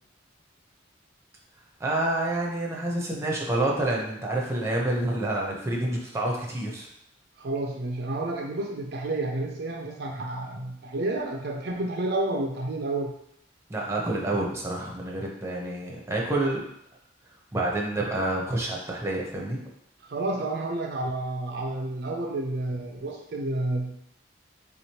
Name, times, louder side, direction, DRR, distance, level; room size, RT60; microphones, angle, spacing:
voice 1, 1.8-6.9 13.7-16.6 17.5-19.6, right 1 dB, 15° right, -2 dB, 0.6 m, -28 dB
voice 2, 7.4-13.1 20.0-24.0, right 2 dB, 60° right, 1 dB, 0.5 m, -30 dB
3.8 x 3.0 x 2.8 m, 0.75 s
head